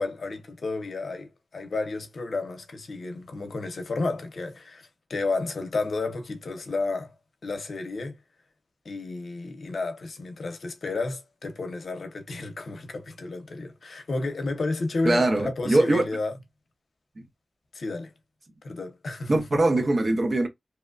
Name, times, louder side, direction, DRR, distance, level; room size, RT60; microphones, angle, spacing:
voice 1, 0.0-7.1 7.4-8.2 8.8-16.4 17.7-18.1 18.6-19.6, left 3 dB, 80° left, 0.6 m, -32 dB
voice 2, 15.0-16.1 17.2-17.3 19.3-20.5, right 2 dB, 55° right, 0.8 m, -22 dB
2.8 x 2.1 x 2.3 m
cardioid pair, 55°, 0 cm